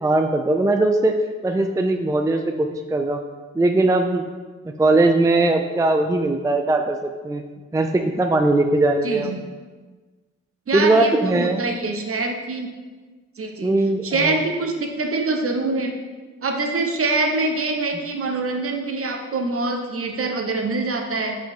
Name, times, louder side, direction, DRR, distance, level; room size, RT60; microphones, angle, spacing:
voice 1, 0.0-1.1 1.4-3.2 3.5-4.3 4.7-7.4 7.7-9.3 10.7-11.6 13.6-14.4, right 2 dB, 10° right, 5 dB, 0.4 m, -20 dB
voice 2, 9.0-9.4 10.7-12.7 13.4-15.9 16.4-21.4, right 3 dB, 50° right, 3 dB, 1.0 m, -24 dB
5.5 x 5.3 x 3.6 m, 1.3 s
supercardioid pair, 50°, 29 cm